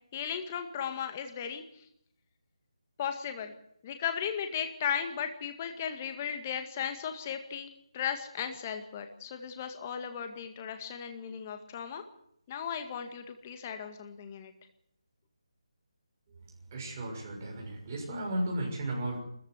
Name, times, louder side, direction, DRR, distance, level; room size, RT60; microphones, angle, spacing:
voice 1, 0.1-1.6 3.0-3.5 3.8-7.7 7.9-12.0 12.5-14.5, left 8 dB, 20° left, 7 dB, 2.0 m, -36 dB
voice 2, 16.7-19.2, right 1 dB, 25° right, -2 dB, 6.5 m, -34 dB
24.5 x 14.5 x 8.1 m, 0.72 s
figure-of-eight pair, 170°, 3 cm